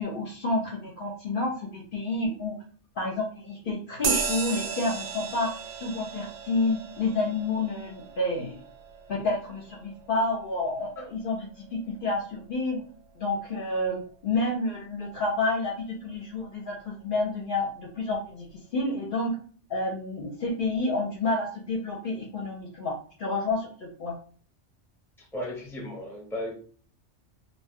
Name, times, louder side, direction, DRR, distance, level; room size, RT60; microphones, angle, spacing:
voice 1, 0.0-2.6 3.0-8.6 9.1-12.8 13.1-15.7 16.0-18.5 18.7-19.3 19.7-24.2, left 2 dB, 55° left, 0.7 m, -29 dB
sound 1, 4.0-11.9, right 6 dB, 75° right, 0.9 m, -35 dB
voice 2, 25.3-26.5, left 1 dB, ahead, 0.7 m, -35 dB
2.2 x 2.2 x 3.5 m
omnidirectional pair, 1.2 m